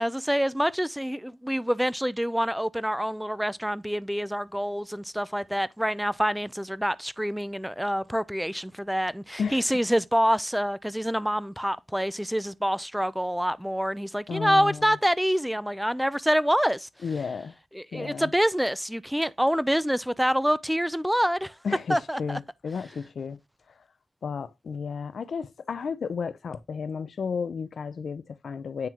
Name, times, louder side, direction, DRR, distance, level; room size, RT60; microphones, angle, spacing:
voice 1, 0.0-16.9 17.7-21.5 21.9-22.4, equal, 5° right, 0.4 m, -26 dB
voice 2, 14.3-15.0 17.0-17.5 17.9-18.3 21.6-23.4 24.2-28.9, left 5 dB, 60° left, 0.6 m, -33 dB
9.1 x 3.6 x 2.9 m
cardioid pair, 55°, 0 cm